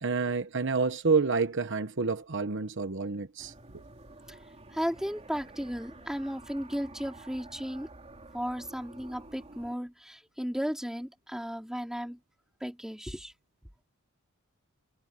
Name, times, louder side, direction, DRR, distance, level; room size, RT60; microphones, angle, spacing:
voice 1, 0.0-3.5, right 4 dB, 60° right, 1.0 m, -28 dB
sound 1, 3.4-9.8, right 2 dB, 30° right, 3.5 m, -50 dB
voice 2, 4.7-7.9 8.3-12.2 12.6-13.3, equal, 5° right, 3.8 m, -35 dB
head